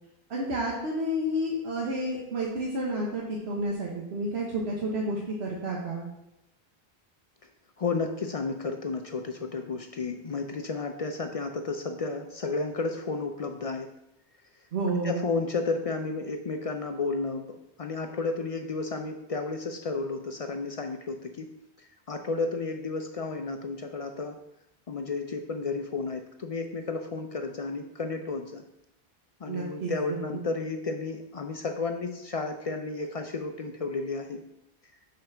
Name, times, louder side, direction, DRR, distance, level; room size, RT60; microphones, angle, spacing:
voice 1, 0.3-6.1 14.7-15.2 29.5-29.9, right 1 dB, 85° right, -3 dB, 1.2 m, -30 dB
voice 2, 7.8-13.9 14.9-21.5 21.8-24.4 24.9-28.6 29.4-34.4, left 3 dB, 50° left, 5 dB, 0.4 m, -32 dB
5.1 x 4.2 x 5.8 m, 0.85 s
omnidirectional pair, 1.1 m